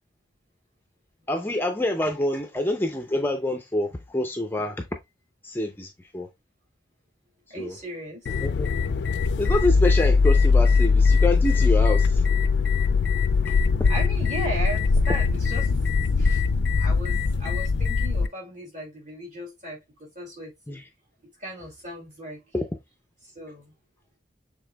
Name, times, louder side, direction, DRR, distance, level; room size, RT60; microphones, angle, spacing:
voice 1, 1.3-4.8 5.4-6.3 7.6-7.8 8.4-8.7 9.4-12.2 20.7-20.8 22.5-22.7, left 1 dB, 10° left, 0.4 m, -27 dB
voice 2, 7.5-8.3 13.9-15.7 16.2-16.4 16.8-20.5 21.4-22.4 23.2-23.7, equal, 40° right, 2.5 m, -36 dB
sound 1, 8.3-18.3, left 4 dB, 75° left, 0.4 m, -21 dB
6.8 x 3.5 x 2.2 m
head